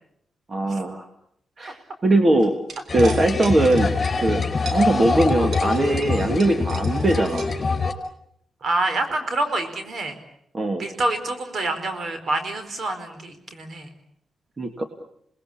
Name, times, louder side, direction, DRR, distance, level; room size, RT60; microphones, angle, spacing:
voice 1, 0.5-1.1 1.6-2.6 2.9-3.9 4.2-7.5 10.5-10.8 14.6-14.9, right 2 dB, 35° right, 6 dB, 2.2 m, -21 dB
sound 1, 2.4-4.3 4.6-8.1, right 4 dB, 80° right, 3.0 m, -39 dB
sound 2, 2.9-7.9, left 4 dB, 40° left, 4.4 m, -24 dB
voice 2, 8.6-10.2 10.8-13.9, right 2 dB, 60° right, 8 dB, 4.4 m, -27 dB
28.0 x 20.0 x 8.6 m, 0.73 s
cardioid pair, 90°, 0 cm